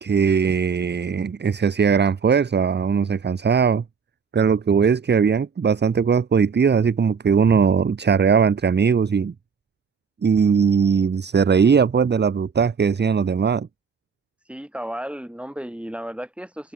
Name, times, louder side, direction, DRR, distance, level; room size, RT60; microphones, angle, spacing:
voice 1, 0.0-3.8 4.3-9.3 10.2-13.7, right 6 dB, 25° right, 0.8 m, -19 dB
voice 2, 14.5-16.7, equal, 5° right, 2.6 m, -33 dB
cardioid pair, 85°, 45 cm